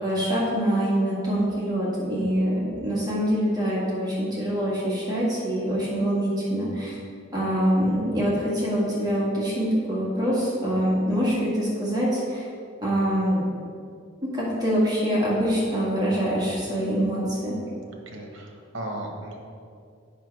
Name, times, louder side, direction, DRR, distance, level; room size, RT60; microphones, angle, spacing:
voice 1, 0.0-7.0 7.3-12.5 12.8-13.4 14.2-17.5, equal, 20° right, -7 dB, 1.9 m, -25 dB
voice 2, 17.9-19.4, right 1 dB, 60° right, 1 dB, 1.2 m, -36 dB
7.7 x 5.7 x 4.7 m, 2.4 s
head